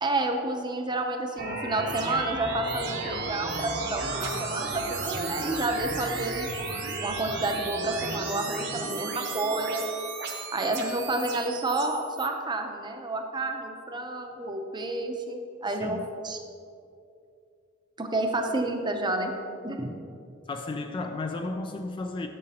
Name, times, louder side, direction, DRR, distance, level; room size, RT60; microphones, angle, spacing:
voice 1, 0.0-6.5 7.0-9.8 10.5-16.4 18.0-19.3 19.6-19.9, right 2 dB, 20° right, 0.6 m, -30 dB
sound 1, 1.4-12.3, right 3 dB, 60° right, 0.9 m, -34 dB
voice 2, 15.7-16.0 20.5-22.3, left 3 dB, 25° left, 0.3 m, -33 dB
11.0 x 6.3 x 2.8 m
head